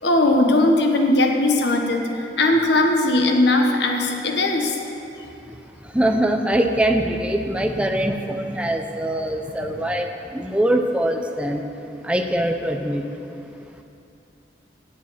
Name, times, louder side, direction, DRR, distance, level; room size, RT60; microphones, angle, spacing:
voice 1, 0.0-4.8 9.6-9.7, left 2 dB, 75° left, 3 dB, 1.3 m, -19 dB
voice 2, 5.9-11.6 12.0-13.0, right 1 dB, 5° right, 4 dB, 0.6 m, -22 dB
17.0 x 7.4 x 5.7 m, 2.7 s
head